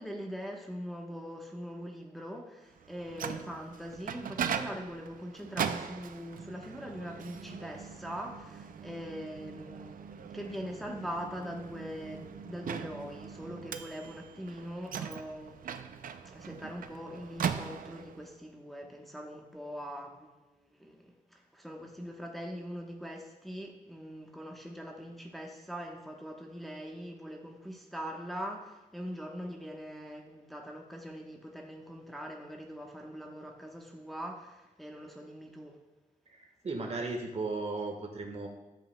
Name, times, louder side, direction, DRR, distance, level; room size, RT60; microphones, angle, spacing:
voice 1, 0.0-35.8, equal, ahead, 0 dB, 1.0 m, -42 dB
Microwave oven, 2.8-18.3, right 7 dB, 85° right, 0.4 m, -40 dB
voice 2, 36.3-38.5, right 3 dB, 50° right, 2 dB, 1.3 m, -36 dB
12.0 x 7.5 x 2.2 m, 1.1 s
wide cardioid pair, 95°, 14 cm